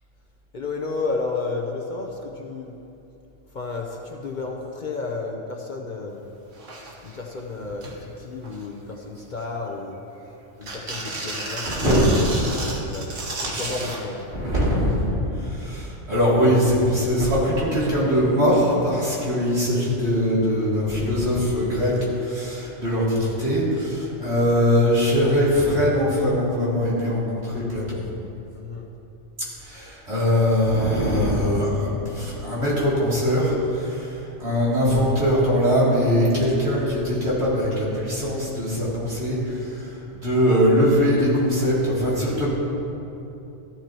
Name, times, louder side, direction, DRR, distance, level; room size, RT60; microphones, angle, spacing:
voice 1, 0.5-2.8 3.5-6.2 7.0-10.0 10.6-11.7 12.4-13.1 13.4-14.2 28.5-28.9, left 3 dB, 45° left, 0 dB, 0.9 m, -32 dB
sound 1, 6.2-6.3 6.5-7.2 7.6-8.0 8.4-8.9 9.4-10.2 10.6-14.0 15.1-15.2, right 2 dB, 85° right, 1.7 m, -32 dB
voice 2, 11.7-12.6 14.3-28.0 29.6-42.5, equal, 65° right, -8 dB, 3.2 m, -21 dB
14.5 x 11.5 x 3.0 m, 2.9 s
omnidirectional pair, 1.2 m